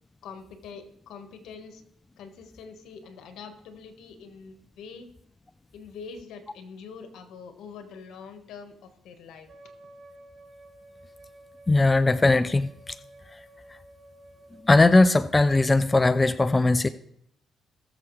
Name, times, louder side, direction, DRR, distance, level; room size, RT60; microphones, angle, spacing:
voice 1, 0.2-1.8 2.2-5.1 5.7-9.5, left 5 dB, 80° left, 1.4 m, -44 dB
Wind instrument woodwind instrument, 9.5-16.0, right 1 dB, 50° right, 5.4 m, -52 dB
voice 2, 11.7-12.9 14.6-16.9, left 2 dB, 20° left, 0.4 m, -19 dB
19.0 x 7.0 x 3.2 m
cardioid pair, 90°, 0 cm